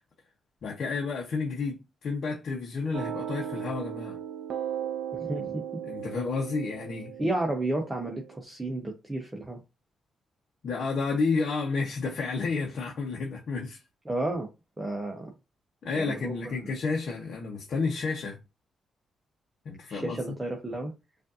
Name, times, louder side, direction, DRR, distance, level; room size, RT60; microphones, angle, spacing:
voice 1, 0.6-4.2 5.3-5.5 5.8-7.1 10.6-13.8 15.8-18.4 19.6-20.2, left 4 dB, 60° left, 0.9 m, -31 dB
sound 1, 2.9-8.4, right 9 dB, 75° right, 0.5 m, -37 dB
voice 2, 5.2-5.6 7.2-9.6 14.1-14.5 14.8-15.3 15.9-16.5 19.9-20.9, right 2 dB, 15° right, 0.8 m, -32 dB
5.0 x 2.6 x 2.6 m
cardioid pair, 120°, 0 cm